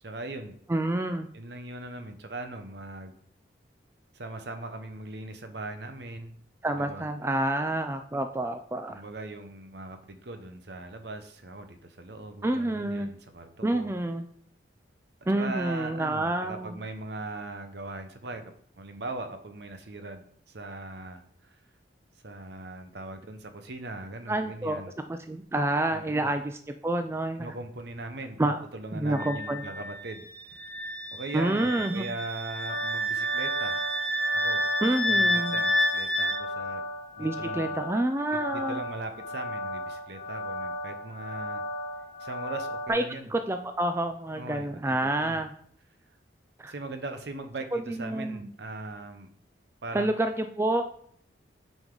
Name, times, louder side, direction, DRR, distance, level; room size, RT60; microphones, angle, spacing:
voice 1, 0.0-0.5 1.3-3.1 4.1-6.4 6.7-7.0 8.9-13.9 15.3-18.4 18.8-21.5 22.2-24.9 25.9-26.3 27.4-30.7 31.1-34.0 34.3-34.6 35.0-36.8 37.2-37.7 38.3-41.6 42.2-43.3 44.4-45.4 46.6-49.3 49.8-50.1, right 2 dB, 60° right, 7 dB, 0.9 m, -40 dB
voice 2, 0.7-1.3 6.6-9.0 12.4-13.1 13.6-14.3 15.3-16.7 24.3-24.8 25.1-27.5 28.4-28.6 29.0-29.6 31.3-32.1 34.8-35.6 37.2-38.8 42.9-43.0 43.3-45.5 46.6-46.7 47.9-48.5 49.9-50.8, right 1 dB, 15° right, 7 dB, 0.3 m, -28 dB
Wind instrument woodwind instrument, 29.1-36.4, equal, 10° left, 0.8 m, -29 dB
sound 1, 32.7-42.9, left 1 dB, 40° left, 1.0 m, -36 dB
9.0 x 5.3 x 3.8 m, 0.63 s
head